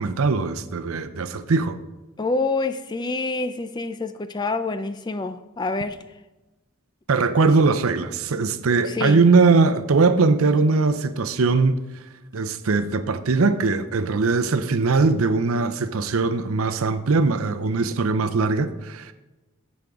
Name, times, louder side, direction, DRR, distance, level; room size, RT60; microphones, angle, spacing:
voice 1, 0.0-1.8 7.1-11.7 12.3-19.1, right 4 dB, 80° right, 0.6 m, -20 dB
voice 2, 2.2-6.0 8.7-9.2, left 3 dB, 20° left, 0.3 m, -27 dB
14.5 x 5.3 x 3.6 m
head